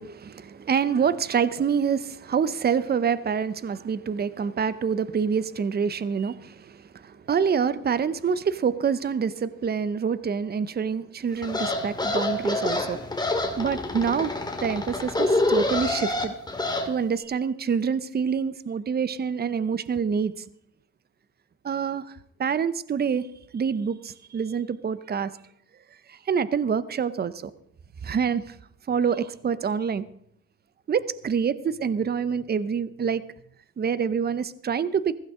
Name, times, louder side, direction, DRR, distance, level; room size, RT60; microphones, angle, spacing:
voice 1, 0.0-13.0 13.6-14.3 14.6-16.3 16.9-20.4 21.6-23.3 23.5-25.3 26.1-27.5 28.0-28.5 28.9-30.0 30.9-33.2 33.8-35.2, right 6 dB, 35° right, 16 dB, 0.7 m, -26 dB
sound 1, 11.4-16.9, left 2 dB, 15° left, 2.0 m, -27 dB
15.5 x 15.0 x 3.7 m, 0.71 s
cardioid pair, 90°, 30 cm